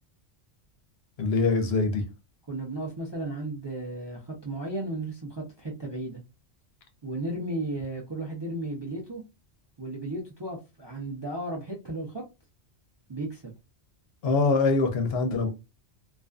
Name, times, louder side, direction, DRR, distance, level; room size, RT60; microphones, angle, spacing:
voice 1, 1.2-2.0 14.2-15.5, left 3 dB, 70° left, 0.8 m, -24 dB
voice 2, 2.5-6.2 7.0-9.2 9.8-12.2 13.1-13.5, right 2 dB, 35° right, 0.4 m, -34 dB
2.5 x 2.3 x 2.2 m
omnidirectional pair, 1.2 m